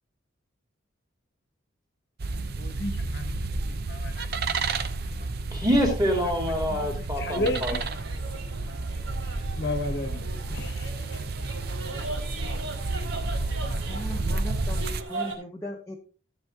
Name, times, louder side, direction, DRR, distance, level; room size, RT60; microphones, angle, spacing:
sound 1, 2.2-15.0, right 3 dB, 50° right, 0.6 m, -31 dB
voice 1, 2.3-4.5 5.2-5.3 6.7-7.9 9.5-10.2 10.5-11.2, left 1 dB, 55° left, 7 dB, 1.1 m, -34 dB
voice 2, 5.5-7.8, equal, 20° right, 1 dB, 2.3 m, -25 dB
sound 2, 7.5-15.4, right 3 dB, 85° right, 2.7 m, -39 dB
voice 3, 13.7-14.8 15.1-16.0, left 1 dB, 15° left, -2 dB, 1.0 m, -38 dB
13.5 x 7.8 x 2.5 m, 0.37 s
head